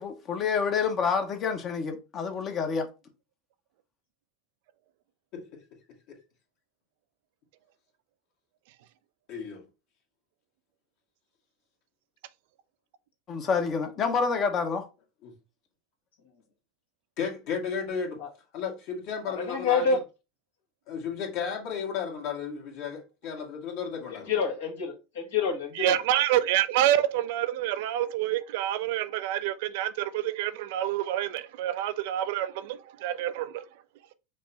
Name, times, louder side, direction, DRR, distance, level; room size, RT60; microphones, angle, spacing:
voice 1, 0.0-2.9 13.3-14.9, left 5 dB, 40° left, 1.0 m, -28 dB
voice 2, 9.3-9.6 15.2-15.3 17.2-18.2 18.5-19.9 20.9-24.3, left 6 dB, 60° left, 1.6 m, -34 dB
voice 3, 19.3-20.0 24.3-25.9, left 5 dB, 80° left, 1.8 m, -27 dB
voice 4, 25.7-33.6, right 12 dB, 70° right, 0.4 m, -27 dB
5.2 x 2.2 x 4.1 m
hypercardioid pair, 90°, 0 cm